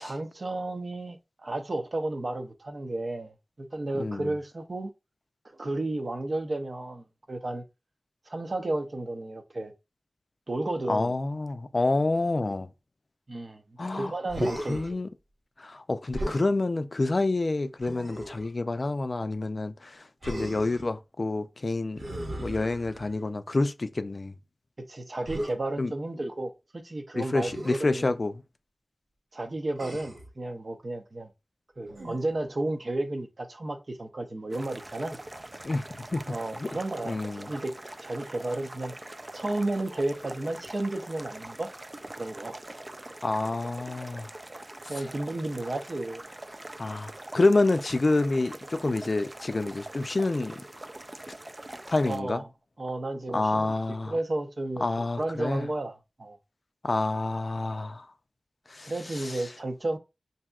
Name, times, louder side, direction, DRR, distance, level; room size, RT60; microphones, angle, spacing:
voice 1, 0.0-4.9 5.5-7.6 8.3-9.7 10.5-11.1 13.3-15.0 24.9-28.1 29.3-31.3 31.8-35.2 36.3-38.9 39.3-41.7 42.1-42.5 44.9-46.2 52.1-52.5 52.8-53.8 54.1-54.8 55.2-56.4 58.8-60.0, right 2 dB, 60° right, 0.7 m, -33 dB
voice 2, 4.0-4.3 10.9-12.7 13.8-14.1 14.7-15.1 15.6-22.0 22.4-24.3 25.8-25.9 27.1-28.3 35.6-36.7 37.1-37.5 43.2-44.3 44.8-44.9 46.8-50.6 51.9-52.4 53.3-54.1 54.8-55.7 56.8-58.1 58.7-59.4, left 2 dB, 55° left, 0.4 m, -28 dB
Human voice, 14.3-14.9 16.1-16.5 17.8-18.5 20.2-20.9 22.0-23.2 25.2-25.5 27.5-27.8 29.8-30.3 31.9-32.4, right 1 dB, 80° right, 1.6 m, -35 dB
sound 1, 34.5-52.2, right 1 dB, 30° right, 0.3 m, -43 dB
5.8 x 2.7 x 2.3 m
wide cardioid pair, 70°, 0 cm